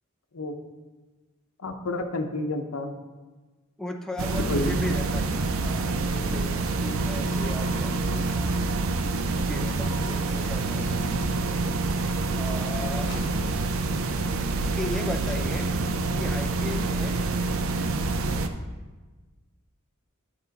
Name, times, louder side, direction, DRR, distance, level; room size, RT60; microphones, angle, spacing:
voice 1, 1.6-2.9 4.5-4.9, left 2 dB, 80° left, 6 dB, 0.8 m, -30 dB
voice 2, 3.8-8.5 9.5-11.5 12.3-13.1 14.7-15.7 16.2-17.2, left 1 dB, ahead, 3 dB, 0.5 m, -36 dB
sound 1, 4.2-18.5, right 3 dB, 70° right, 0.5 m, -27 dB
Car, 10.0-10.7 12.9-13.7, left 1 dB, 55° left, 2.5 m, -43 dB
10.0 x 5.5 x 4.0 m, 1.3 s
head